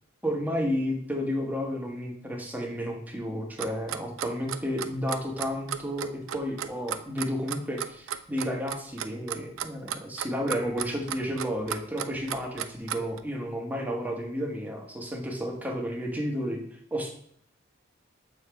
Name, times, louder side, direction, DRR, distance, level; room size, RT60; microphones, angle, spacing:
voice 1, 0.2-16.6 16.9-17.1, equal, 10° right, 0 dB, 1.1 m, -32 dB
Clock, 3.6-13.2, right 10 dB, 85° right, 0.4 m, -34 dB
6.8 x 4.3 x 3.4 m, 0.65 s
head